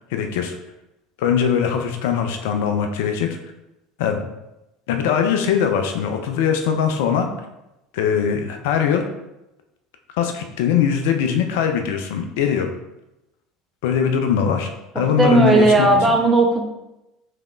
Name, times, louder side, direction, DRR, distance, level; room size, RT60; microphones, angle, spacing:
voice 1, 0.1-0.5 1.2-3.4 4.0-4.2 4.9-7.3 7.9-9.0 10.2-12.7 13.8-14.7 15.0-16.2, left 7 dB, 60° left, 5 dB, 0.3 m, -21 dB
voice 2, 15.0-16.6, right 2 dB, 20° right, 1 dB, 0.7 m, -16 dB
3.3 x 3.2 x 2.3 m, 0.93 s
figure-of-eight pair, 70°, 0 cm